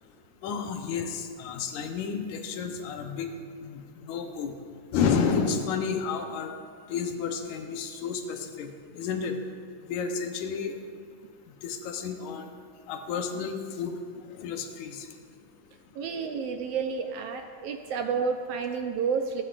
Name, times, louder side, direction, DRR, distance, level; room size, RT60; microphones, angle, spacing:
voice 1, 0.4-3.4 3.6-4.5 4.9-6.5 6.9-8.7 9.0-9.4 9.9-10.8 11.6-12.5 12.9-14.0 14.4-15.1, left 6 dB, 90° left, 5 dB, 2.3 m, -31 dB
voice 2, 15.9-19.4, right 5 dB, 75° right, 5 dB, 1.4 m, -30 dB
24.5 x 9.7 x 2.5 m, 2.1 s
omnidirectional pair, 3.3 m